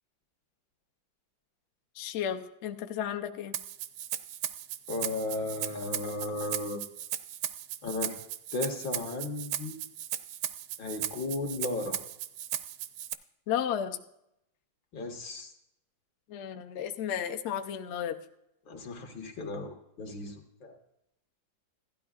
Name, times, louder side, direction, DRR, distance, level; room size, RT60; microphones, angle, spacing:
voice 1, 2.0-3.5 13.5-14.0 16.3-18.2, left 9 dB, 85° left, 6 dB, 0.6 m, -33 dB
Rattle (instrument), 3.5-13.1, right 11 dB, 75° right, 0.8 m, -37 dB
voice 2, 4.9-6.8 7.8-8.2 8.5-9.8 10.8-12.0 14.9-15.5 18.7-20.8, left 2 dB, 70° left, 3 dB, 1.9 m, -35 dB
16.0 x 12.0 x 2.4 m, 0.81 s
omnidirectional pair, 2.1 m